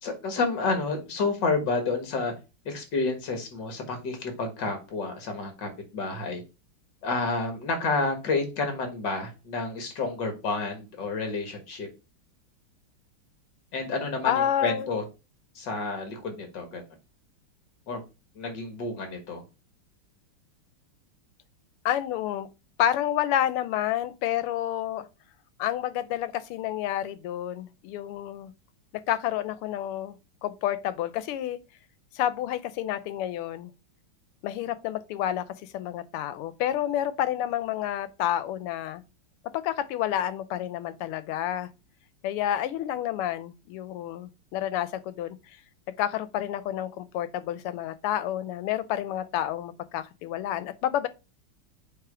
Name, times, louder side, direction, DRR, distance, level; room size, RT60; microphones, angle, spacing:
voice 1, 0.0-2.3 2.7-6.4 7.0-11.9 13.7-15.0 15.6-16.8 17.9-18.0 18.4-19.4, left 3 dB, 55° left, 2.2 m, -30 dB
voice 2, 14.2-14.9 21.8-22.5 22.8-25.1 25.6-28.5 29.1-30.2 30.4-31.6 32.1-33.7 34.4-39.0 39.5-41.7 42.2-45.4 46.0-51.1, left 11 dB, 90° left, 1.6 m, -29 dB
8.2 x 3.1 x 4.9 m
omnidirectional pair, 2.4 m